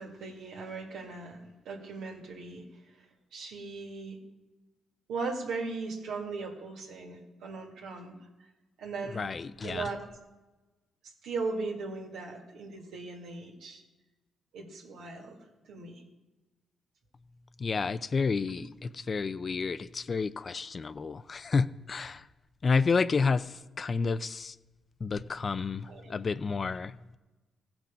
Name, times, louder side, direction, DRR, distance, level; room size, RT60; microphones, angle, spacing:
voice 1, 0.0-2.6 3.3-4.2 5.1-8.2 8.8-9.3 9.6-10.0 11.2-13.8 14.5-15.4 15.6-16.0 18.5-18.6 25.9-26.2, right 4 dB, 75° right, 1 dB, 2.0 m, -38 dB
voice 2, 9.1-9.9 17.6-22.2 22.6-24.5 25.0-27.0, left 4 dB, 45° left, 14 dB, 0.5 m, -30 dB
16.5 x 6.1 x 5.1 m, 1.1 s
supercardioid pair, 50°, 0 cm